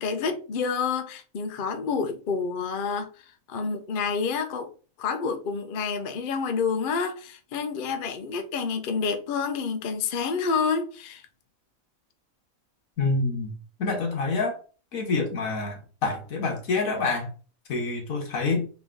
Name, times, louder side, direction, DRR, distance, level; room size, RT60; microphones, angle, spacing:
voice 1, 0.0-4.7 5.0-11.3, left 5 dB, 50° left, 0.6 m, -28 dB
voice 2, 13.0-14.6 14.9-17.3 17.7-18.7, left 3 dB, 75° left, 1.6 m, -27 dB
3.9 x 3.0 x 3.7 m
omnidirectional pair, 1.4 m